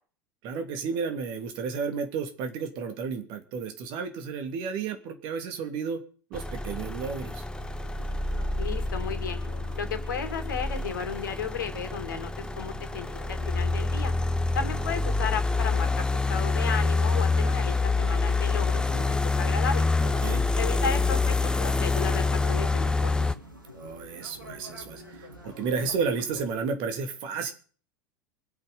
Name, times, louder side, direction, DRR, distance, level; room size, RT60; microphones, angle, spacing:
voice 1, 0.4-6.0 6.3-7.4 20.0-20.5 23.7-27.5, right 5 dB, 50° right, 7 dB, 2.9 m, -32 dB
sound 1, 6.3-23.4, left 3 dB, 10° left, 1.1 m, -27 dB
sound 2, 7.5-26.5, equal, 85° right, 2.8 m, -47 dB
voice 2, 8.5-9.4 9.8-12.3 12.5-14.1 14.5-19.9 20.6-23.2, left 6 dB, 70° left, 8 dB, 2.7 m, -34 dB
24.0 x 8.5 x 5.4 m, 0.41 s
figure-of-eight pair, 80°, 11 cm